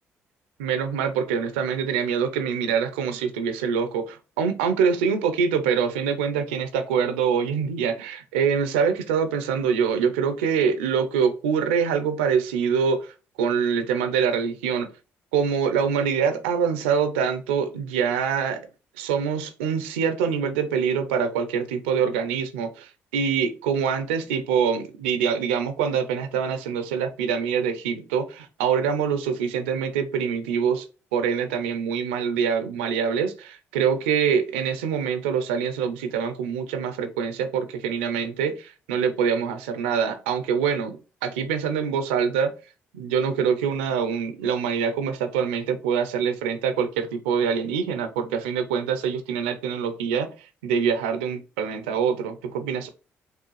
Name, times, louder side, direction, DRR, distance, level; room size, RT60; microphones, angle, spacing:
voice 1, 0.6-14.9 15.3-18.7 19.0-30.9 31.1-42.5 42.9-52.9, right 7 dB, 90° right, 0.5 m, -25 dB
4.6 x 2.3 x 3.0 m
hypercardioid pair, 50°, 6 cm